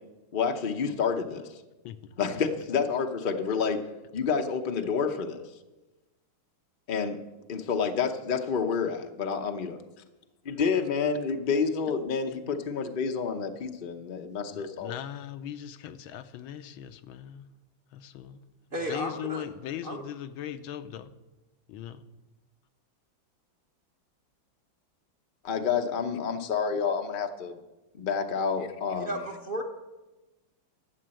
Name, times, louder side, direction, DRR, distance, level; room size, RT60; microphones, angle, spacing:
voice 1, 0.3-1.5 2.2-3.9 4.1-5.4 6.9-7.2 7.5-9.8 10.4-14.9 25.4-27.5 27.9-29.2, left 6 dB, 70° left, 5 dB, 0.5 m, -29 dB
voice 2, 14.5-17.5 17.9-18.4 18.9-21.1 21.7-22.1, left 10 dB, 90° left, 10 dB, 1.6 m, -39 dB
voice 3, 18.7-19.4 19.8-20.0 29.0-29.6, equal, 40° right, 4 dB, 0.8 m, -33 dB
12.5 x 7.8 x 7.6 m, 1.1 s
omnidirectional pair, 2.2 m